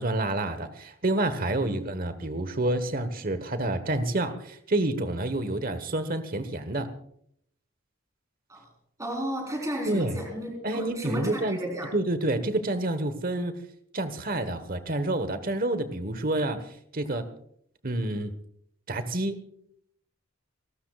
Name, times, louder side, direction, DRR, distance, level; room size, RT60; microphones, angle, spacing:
voice 1, 0.0-6.9 9.8-10.2 10.6-11.6 11.9-13.5 13.9-16.6 16.9-17.2 17.8-18.3 18.9-19.4, right 1 dB, 45° right, 11 dB, 1.3 m, -28 dB
voice 2, 9.0-11.9, equal, 15° right, 0 dB, 4.2 m, -33 dB
30.0 x 13.0 x 2.4 m, 0.68 s
head